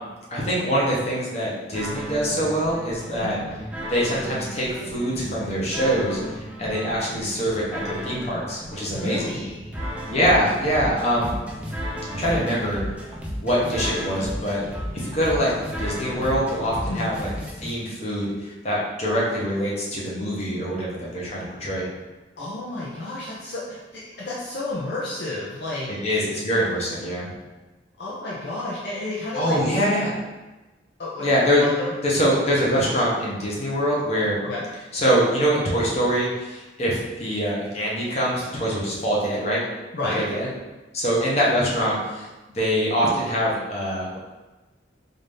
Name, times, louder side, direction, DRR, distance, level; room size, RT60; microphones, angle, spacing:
voice 1, 0.3-3.4 3.9-9.4 10.1-11.3 12.1-12.8 13.4-14.6 15.0-17.3 17.6-21.9 25.9-27.4 29.3-30.1 31.2-31.6 32.0-34.4 34.9-39.6 40.1-40.5 40.9-42.3 42.5-44.2, equal, 35° left, -6 dB, 1.0 m, -24 dB
sound 1, 1.7-17.7, equal, 5° right, 0.4 m, -34 dB
voice 2, 8.9-9.7 16.9-17.2 22.4-25.9 28.0-30.0 31.0-31.3 31.6-31.9 34.4-34.7 39.9-40.3, left 2 dB, 60° left, -6 dB, 0.6 m, -31 dB
4.0 x 2.6 x 3.4 m, 1.2 s
head